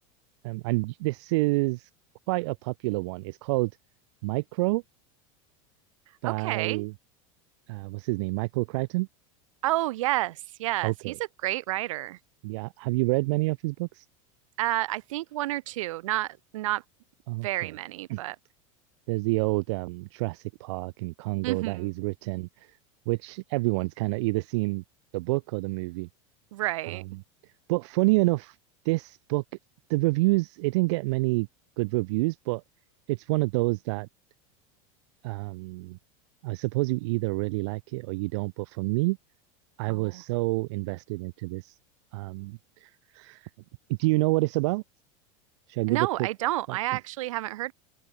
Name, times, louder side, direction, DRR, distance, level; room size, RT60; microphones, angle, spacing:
voice 1, 0.4-1.9 2.3-3.7 4.2-4.8 6.2-6.9 7.7-9.1 10.8-11.2 12.4-14.0 17.3-17.7 18.1-18.2 19.1-22.8 23.0-24.8 25.1-26.1 26.9-27.2 27.7-28.6 28.8-29.4 29.9-31.5 31.8-32.6 33.1-34.1 35.2-36.0 36.4-39.2 39.8-41.8 42.1-43.5 43.9-44.8 45.7-46.3 46.7-46.8, right 24 dB, 60° right, 1.3 m, -28 dB
voice 2, 6.2-6.9 9.6-11.1 11.4-12.2 14.6-16.8 17.4-18.4 21.4-21.9 26.5-27.0 39.9-40.2 45.9-47.7, right 17 dB, 80° right, 7.1 m, -30 dB
open air
supercardioid pair, 160°, 16 cm